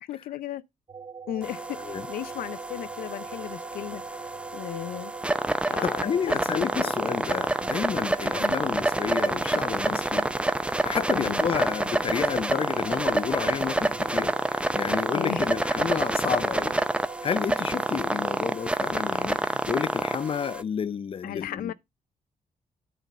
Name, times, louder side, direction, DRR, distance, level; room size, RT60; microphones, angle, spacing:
voice 1, 0.0-0.6 1.3-5.1 5.6-6.3 6.7-6.9 8.4-8.6 11.1-11.4 15.1-15.5 21.2-21.7, left 12 dB, 85° left, 0.6 m, -36 dB
sound 1, 0.9-18.4, right 6 dB, 35° right, 0.9 m, -42 dB
sound 2, 1.4-20.6, right 1 dB, 10° right, 0.6 m, -28 dB
voice 2, 5.8-10.3 10.6-16.8 17.2-21.7, left 7 dB, 40° left, 0.5 m, -30 dB
9.3 x 3.9 x 5.4 m
cardioid pair, 95°, 15 cm